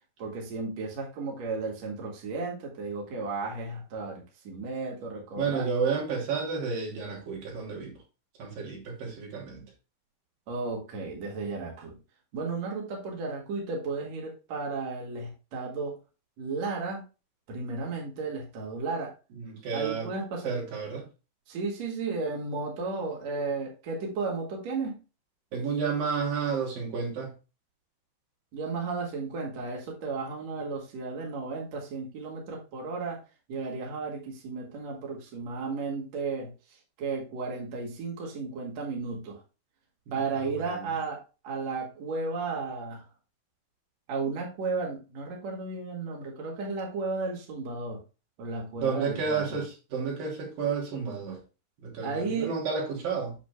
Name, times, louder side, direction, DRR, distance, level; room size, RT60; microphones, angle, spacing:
voice 1, 0.2-5.7 10.5-11.9 12.3-16.0 16.4-17.0 17.5-19.1 19.7-20.6 21.5-25.0 28.5-33.2 33.5-36.5 37.0-39.4 40.1-41.2 41.4-43.0 44.1-48.0 48.4-49.6 52.0-52.6, right 4 dB, 55° right, 2.9 m, -34 dB
voice 2, 5.4-8.0 8.4-9.6 19.3-20.1 20.4-21.1 25.5-27.3 40.1-40.2 40.5-40.9 48.8-51.4 51.8-53.4, right 5 dB, 70° right, 4.4 m, -31 dB
8.7 x 7.5 x 2.2 m
omnidirectional pair, 4.1 m